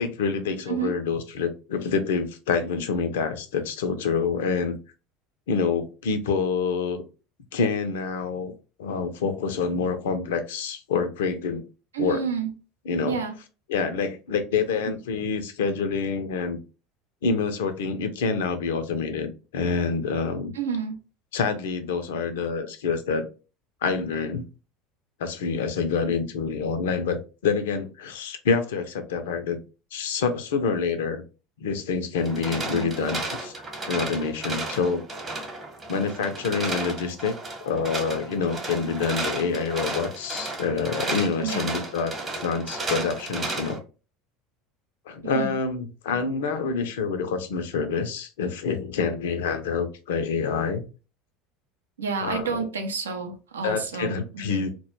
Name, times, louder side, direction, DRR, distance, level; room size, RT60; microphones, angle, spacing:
voice 1, 0.0-4.8 5.5-7.0 7.5-8.5 8.8-11.6 12.0-12.2 12.9-13.2 13.7-16.6 17.2-20.5 21.3-23.3 23.8-24.4 25.2-29.6 29.9-31.2 31.6-33.5 33.9-35.0 35.9-37.3 37.6-42.2 42.4-43.8 45.1-50.9 52.2-52.7 53.6-54.7, left 5 dB, 70° left, 0.4 m, -27 dB
voice 2, 11.9-12.5 13.0-13.3 14.9-15.0 20.5-21.0 32.7-32.8 41.4-41.7 45.3-45.5 52.0-54.7, right 6 dB, 80° right, 0.4 m, -30 dB
sound 1, 32.2-43.8, right 2 dB, 30° right, 0.9 m, -33 dB
2.1 x 2.1 x 3.0 m
figure-of-eight pair, 70°, 0 cm